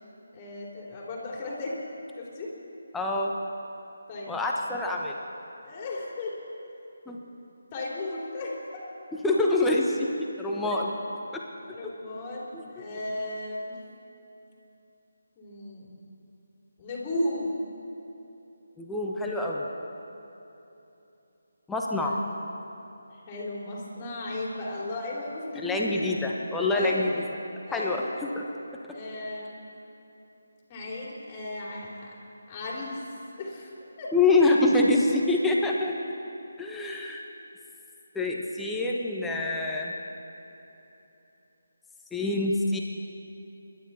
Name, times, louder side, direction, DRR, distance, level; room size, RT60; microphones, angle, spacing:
voice 1, 0.3-1.8 2.2-2.5 4.1-4.3 5.6-6.5 7.7-8.6 10.6-10.8 11.7-13.8 15.4-15.9 16.8-17.6 22.0-22.2 23.1-26.1 26.7-27.1 27.7-28.1 28.9-29.6 30.7-32.2 32.5-33.0 33.4-34.1, left 2 dB, 25° left, -4 dB, 3.5 m, -35 dB
voice 2, 2.9-3.3 4.3-5.2 7.1-7.2 9.2-10.1 10.4-10.9 11.8-11.9 12.5-12.6 18.8-19.7 21.7-22.2 25.6-27.1 27.7-28.4 34.1-35.9 36.6-37.2 38.1-39.9 42.1-42.8, left 2 dB, 5° left, -2 dB, 1.1 m, -25 dB
27.0 x 12.0 x 4.3 m, 3.0 s
figure-of-eight pair, 150°, 0 cm